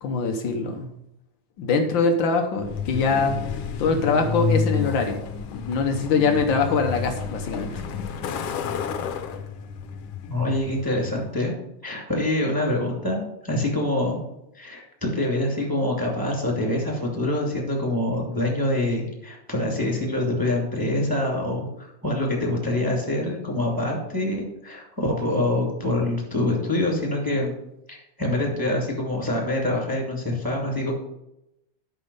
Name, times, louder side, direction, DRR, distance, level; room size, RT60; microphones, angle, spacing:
voice 1, 0.0-0.9 1.6-3.4 3.8-5.2 5.5-7.8, left 4 dB, 85° left, 4 dB, 1.0 m, -23 dB
Truck, 2.6-11.3, left 6 dB, 70° left, 1.5 m, -30 dB
voice 2, 10.3-11.5 11.8-14.3 14.5-27.6 27.9-30.9, left 1 dB, 10° right, -2 dB, 1.8 m, -25 dB
9.9 x 6.1 x 5.5 m, 0.84 s
omnidirectional pair, 3.5 m